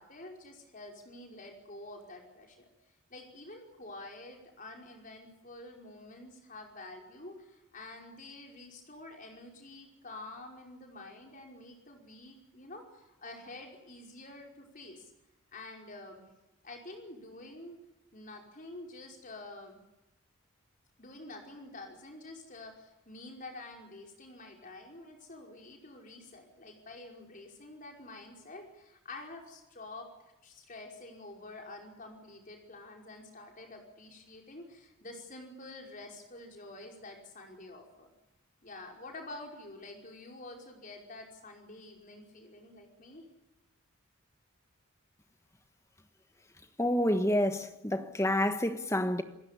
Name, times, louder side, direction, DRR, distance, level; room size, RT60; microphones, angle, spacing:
voice 1, 0.0-2.7 3.1-15.1 15.5-16.2 16.6-17.8 18.1-19.8 21.0-30.1 30.4-38.1 38.6-43.3, left 2 dB, 40° left, 5.5 m, -48 dB
voice 2, 46.8-49.2, left 1 dB, 15° left, 1.4 m, -28 dB
28.0 x 16.0 x 8.5 m
head